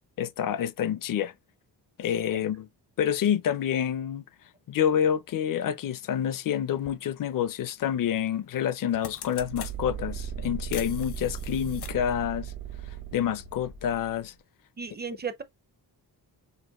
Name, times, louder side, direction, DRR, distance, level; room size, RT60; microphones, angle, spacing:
voice 1, 0.2-1.3 2.0-2.7 3.0-4.2 4.7-12.5 13.1-14.3, left 9 dB, 55° left, 0.5 m, -28 dB
sound 1, 6.8-7.0 8.3-8.5 8.8-9.7 10.7-12.1, left 8 dB, 75° left, 1.0 m, -43 dB
sound 2, 9.4-14.3, right 8 dB, 50° right, 0.8 m, -37 dB
voice 2, 14.8-15.4, right 6 dB, 25° right, 0.5 m, -35 dB
6.6 x 2.5 x 2.9 m
wide cardioid pair, 165°, 40 cm